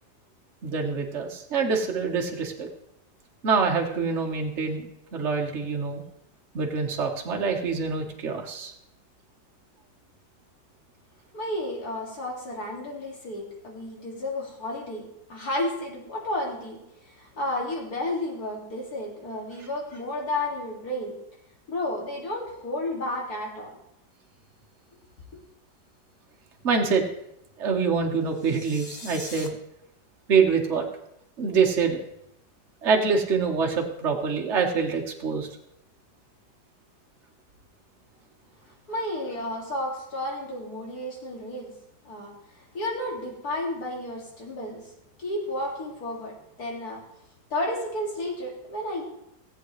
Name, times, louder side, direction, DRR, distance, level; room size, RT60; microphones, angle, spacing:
voice 1, 0.6-2.7 3.4-4.8 5.1-6.0 6.5-8.7 26.6-27.0 27.6-29.6 30.3-30.9 31.4-32.0 32.8-35.5, right 5 dB, 45° right, 2 dB, 1.4 m, -25 dB
voice 2, 11.3-21.2 21.7-23.8 38.9-41.7 42.0-44.9 45.2-47.0 47.5-49.0, left 1 dB, 65° left, -1 dB, 2.8 m, -32 dB
sound 1, 28.3-29.5, left 3 dB, 30° left, 0.9 m, -42 dB
17.0 x 8.2 x 3.2 m, 0.79 s
omnidirectional pair, 1.7 m